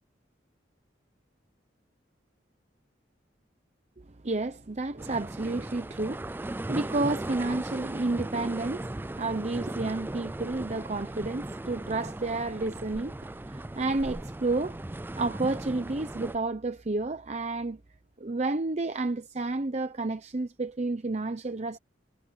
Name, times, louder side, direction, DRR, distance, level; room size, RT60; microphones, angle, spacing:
voice 1, 4.2-14.8 15.2-17.8 18.2-21.8, right 2 dB, 40° right, 0.8 m, -31 dB
sound 1, 5.0-16.4, right 1 dB, 10° right, 0.4 m, -37 dB
head